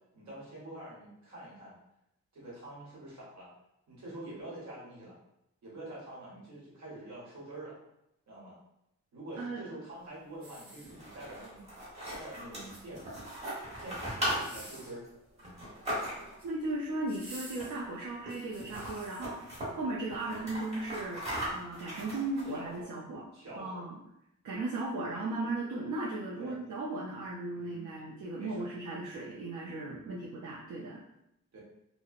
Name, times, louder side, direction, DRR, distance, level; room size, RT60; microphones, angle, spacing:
voice 1, 0.1-1.7 2.3-3.5 3.9-5.2 5.6-7.8 8.3-8.6 9.1-11.7 12.1-15.1 15.4-15.6 22.5-22.9 23.3-23.8 26.4-26.6 27.5-27.9 28.3-29.1 31.5-31.6, right 1 dB, 70° right, -6 dB, 1.0 m, -46 dB
sound 1, 10.3-11.4 12.5-13.3 14.2-15.0 16.1-16.5 17.1-19.2 19.8-20.0, right 1 dB, 50° right, 0.8 m, -51 dB
sound 2, 10.8-16.5 17.5-18.0 18.3-18.4 18.6-19.7 20.1-22.8, equal, 20° right, 0.9 m, -38 dB
voice 2, 16.4-21.2 21.5-23.2 23.6-24.0 24.4-31.0, right 2 dB, 85° right, -4 dB, 0.5 m, -36 dB
2.8 x 2.0 x 2.4 m, 0.82 s
wide cardioid pair, 175°, 29 cm